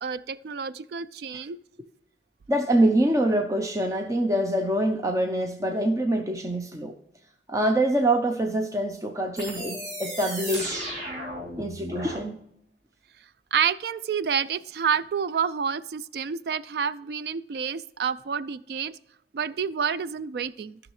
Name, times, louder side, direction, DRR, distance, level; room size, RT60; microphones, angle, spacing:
voice 1, 0.0-1.6 13.5-18.9 19.3-20.8, right 7 dB, 60° right, 16 dB, 0.3 m, -28 dB
voice 2, 2.5-7.0 7.5-10.9 11.6-12.4, right 1 dB, 20° right, 4 dB, 0.6 m, -25 dB
sound 1, 9.4-12.2, equal, 40° right, 3.4 m, -35 dB
14.5 x 6.2 x 3.1 m, 0.77 s
head